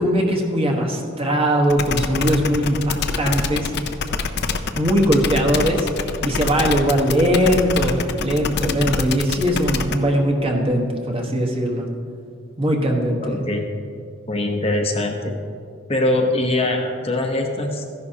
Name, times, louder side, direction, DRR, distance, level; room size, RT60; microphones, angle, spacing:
voice 1, 0.0-3.7 4.7-5.9 6.2-11.9 12.6-13.4, equal, 30° right, 1 dB, 1.2 m, -20 dB
sound 1, 1.7-10.0, left 4 dB, 55° left, 0.5 m, -25 dB
voice 2, 13.2-13.6 14.3-15.3 15.9-17.8, left 2 dB, 30° left, 2 dB, 0.9 m, -22 dB
14.0 x 11.0 x 2.8 m, 2.3 s
head